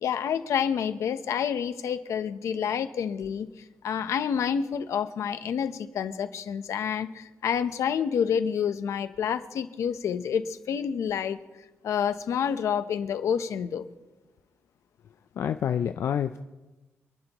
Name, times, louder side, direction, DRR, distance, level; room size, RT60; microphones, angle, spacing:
voice 1, 0.0-3.5 3.8-11.4 11.8-13.8, left 7 dB, 85° left, 11 dB, 0.9 m, -28 dB
voice 2, 15.4-16.4, left 9 dB, 65° left, 8 dB, 0.5 m, -27 dB
28.0 x 11.5 x 3.1 m, 1.1 s
wide cardioid pair, 145°, 5 cm